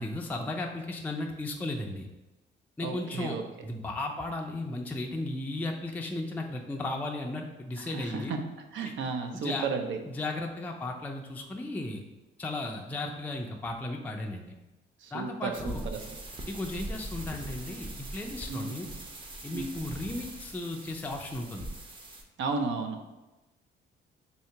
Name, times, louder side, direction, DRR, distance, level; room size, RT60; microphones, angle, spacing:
voice 1, 0.0-2.1 2.8-3.4 3.6-8.3 8.8-8.9 9.3-9.6 10.1-12.0 12.4-14.6 15.1-15.9 16.5-18.9 19.4-21.7, left 2 dB, 10° left, 1 dB, 0.4 m, -35 dB
voice 2, 2.8-3.4 7.8-8.4 8.7-10.0 15.0-16.0 18.5-18.7 19.5-19.9 22.4-23.0, right 4 dB, 70° right, 5 dB, 0.5 m, -33 dB
sound 1, 15.5-22.2, right 1 dB, 25° right, 0.6 m, -41 dB
2.8 x 2.7 x 4.4 m, 1.1 s
cardioid pair, 90°, 20 cm